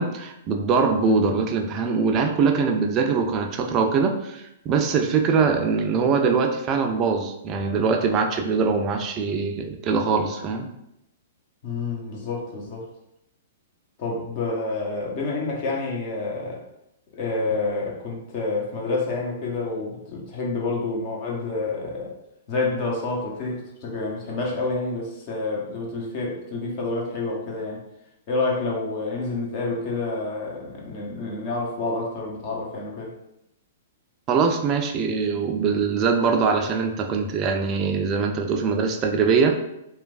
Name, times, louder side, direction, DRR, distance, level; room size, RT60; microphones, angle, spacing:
voice 1, 0.0-10.7 34.3-39.6, right 5 dB, 30° right, 4 dB, 0.4 m, -22 dB
voice 2, 11.6-12.9 14.0-16.6 17.1-22.1 22.5-27.8 28.3-33.1, left 3 dB, 45° left, -3 dB, 0.8 m, -28 dB
3.1 x 2.2 x 2.4 m, 0.83 s
figure-of-eight pair, 110°, 0 cm